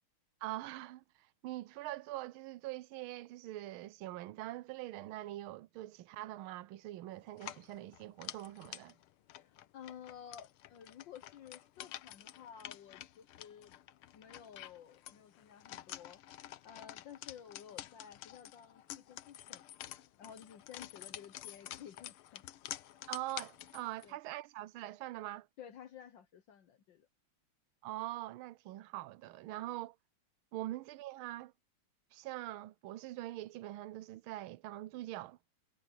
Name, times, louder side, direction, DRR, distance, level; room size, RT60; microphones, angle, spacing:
voice 1, 0.4-1.0 1.4-8.9 23.1-25.5 27.8-29.9 30.5-31.5 32.1-35.4, right 16 dB, 80° right, 1.4 m, -43 dB
sound 1, 7.3-24.1, left 13 dB, 90° left, 1.7 m, -49 dB
voice 2, 9.4-13.7 14.1-19.6 20.2-22.4 24.0-24.2 25.6-27.1, left 8 dB, 65° left, 1.6 m, -53 dB
sound 2, 18.6-19.2 22.5-25.2, right 5 dB, 45° right, 3.4 m, -80 dB
omnidirectional pair, 2.3 m